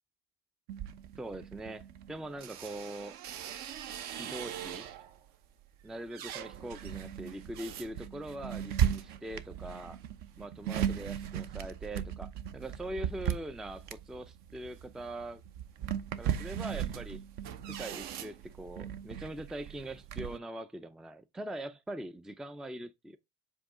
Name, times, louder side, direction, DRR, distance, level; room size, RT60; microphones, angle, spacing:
sound 1, 0.7-5.2 5.7-20.4, right 9 dB, 60° right, 0.8 m, -37 dB
voice 1, 1.2-3.2 4.2-4.9 5.8-10.0 10.4-15.4 16.2-17.2 17.7-23.2, right 1 dB, 5° right, 0.3 m, -42 dB
7.6 x 2.9 x 4.8 m
cardioid pair, 135°, 18 cm